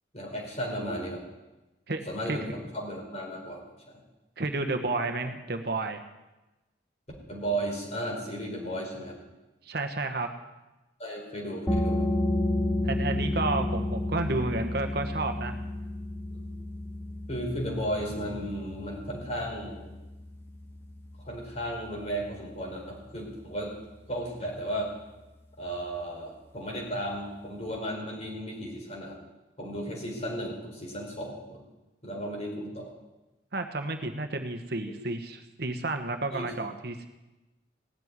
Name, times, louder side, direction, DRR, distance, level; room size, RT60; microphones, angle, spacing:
voice 1, 0.1-1.2 2.1-2.5 2.7-3.6 7.3-9.2 11.0-12.1 16.3-16.4 17.3-19.9 21.2-23.7 24.1-24.9 25.6-29.2 29.6-31.6 32.0-32.9 36.3-36.5, right 1 dB, 35° left, 0 dB, 4.9 m, -34 dB
voice 2, 4.4-6.0 9.6-10.3 12.8-15.5 33.5-37.1, right 2 dB, 60° right, 6 dB, 1.2 m, -31 dB
sound 1, 11.7-23.0, left 1 dB, 15° left, 1.2 m, -32 dB
17.5 x 7.7 x 9.7 m, 1.1 s
head